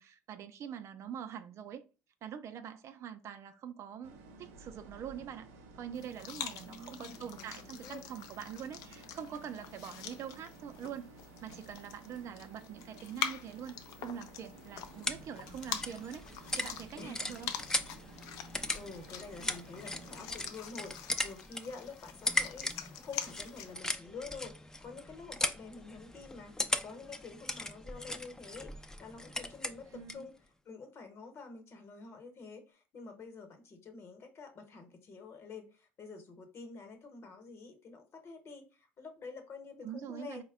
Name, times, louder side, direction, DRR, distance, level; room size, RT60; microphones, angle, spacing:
voice 1, 0.0-1.8 2.2-5.5 5.7-11.1 11.4-16.2 16.6-17.5 29.9-30.3 39.8-40.4, right 8 dB, 50° right, 0.4 m, -44 dB
sound 1, 4.0-20.5, right 3 dB, 90° right, 0.7 m, -54 dB
sound 2, 5.9-23.7, left 9 dB, 75° left, 0.4 m, -45 dB
voice 2, 6.6-8.0 17.0-17.5 18.7-40.4, left 4 dB, 45° left, 1.0 m, -48 dB
sound 3, 14.4-30.3, left 2 dB, 10° left, 0.4 m, -39 dB
4.1 x 2.2 x 3.5 m
supercardioid pair, 95°, 6 cm